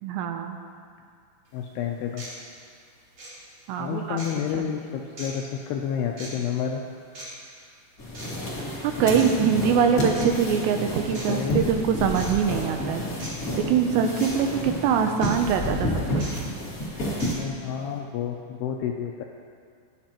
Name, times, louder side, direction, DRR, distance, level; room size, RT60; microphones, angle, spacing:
voice 1, 0.0-0.6 3.7-4.2 4.5-4.7 8.8-13.0 13.5-16.3, right 7 dB, 80° right, 5 dB, 2.7 m, -23 dB
voice 2, 1.5-2.2 3.8-6.8 11.1-11.6 17.3-19.2, left 8 dB, 85° left, 2 dB, 2.3 m, -30 dB
sound 1, 1.5-1.6 2.2-2.3 3.1-3.3 4.2-4.3 5.2-5.3 6.2-6.3 7.1-7.3 8.1-8.3 9.1-9.3 10.1-10.3 11.1-11.3 12.1-12.3 13.2-13.3 14.2-14.3 15.2-15.3 16.2-16.3 17.2-17.3, right 1 dB, 35° right, 3.7 m, -39 dB
sound 2, 8.0-17.3, left 1 dB, 45° left, 1.0 m, -30 dB
16.0 x 9.6 x 2.9 m, 2.1 s
omnidirectional pair, 5.2 m